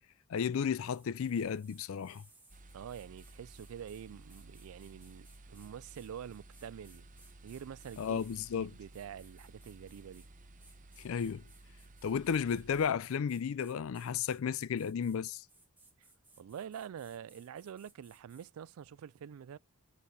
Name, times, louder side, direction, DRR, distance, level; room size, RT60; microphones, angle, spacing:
voice 1, 0.3-2.2 8.0-8.7 11.0-11.4 12.0-15.4, left 7 dB, 70° left, 0.4 m, -33 dB
sound 1, 0.7-8.5 8.9-10.3 10.6-18.5, right 2 dB, 10° right, 2.5 m, -63 dB
sound 2, 2.5-12.9, right 2 dB, 35° right, 0.8 m, -55 dB
voice 2, 2.7-7.1 7.4-8.3 8.5-10.3 16.0-16.1 16.4-19.6, right 8 dB, 75° right, 0.3 m, -46 dB
6.6 x 4.0 x 5.3 m
head